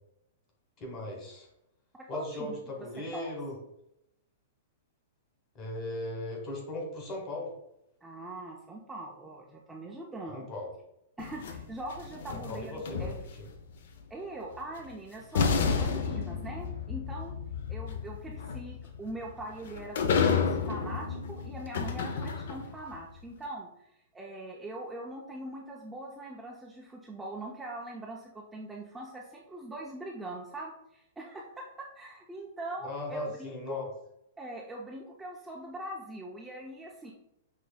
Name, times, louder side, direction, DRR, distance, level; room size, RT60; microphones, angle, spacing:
voice 1, 0.8-1.5 2.1-3.6 5.5-7.5 10.3-10.7 12.3-13.5 32.8-33.9, left 2 dB, 30° left, 0 dB, 1.2 m, -38 dB
voice 2, 2.1-2.6 3.1-3.3 8.0-10.5 11.2-13.2 14.1-17.4 17.7-23.7 24.1-33.8 34.4-37.1, right 1 dB, 10° right, -2 dB, 0.4 m, -42 dB
sound 1, 11.2-13.6 14.8-14.9 15.3-22.8, left 5 dB, 65° left, 0.5 m, -31 dB
5.8 x 2.6 x 2.2 m, 0.82 s
hypercardioid pair, 150°, 0 cm